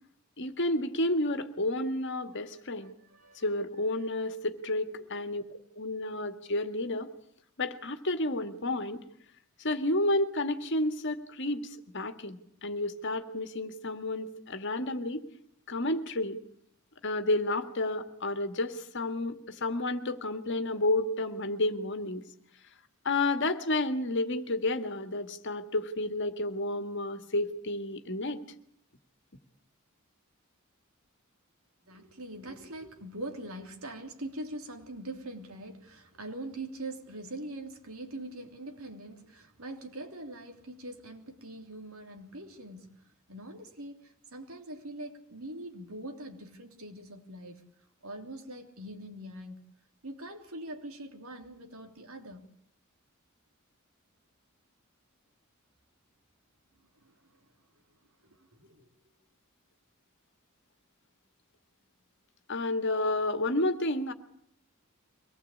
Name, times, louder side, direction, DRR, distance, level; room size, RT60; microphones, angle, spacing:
voice 1, 0.4-3.0 3.4-7.1 7.6-9.0 9.6-11.7 11.9-15.3 15.7-16.4 17.0-22.2 23.1-28.4 62.5-64.1, left 2 dB, 60° left, 9 dB, 1.9 m, -31 dB
voice 2, 2.7-3.4 31.8-47.6 48.0-49.6 50.0-52.5 57.0-57.3 58.2-58.9, right 1 dB, 80° right, 4 dB, 3.3 m, -43 dB
24.0 x 19.0 x 8.6 m, 0.67 s
head